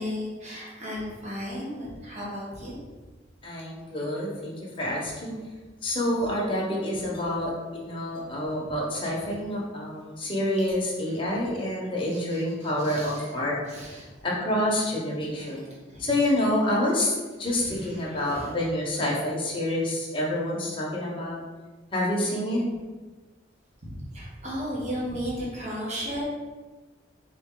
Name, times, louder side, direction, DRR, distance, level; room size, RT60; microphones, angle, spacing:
voice 1, 0.0-2.8 12.1-13.3 13.7-14.1 15.3-16.0 17.4-18.5 23.8-26.2, equal, 35° right, -6 dB, 1.3 m, -35 dB
voice 2, 3.4-5.4 5.8-13.8 14.2-15.7 16.0-21.4 21.9-22.6, left 1 dB, 25° left, -4 dB, 1.0 m, -28 dB
4.2 x 3.2 x 3.8 m, 1.3 s
head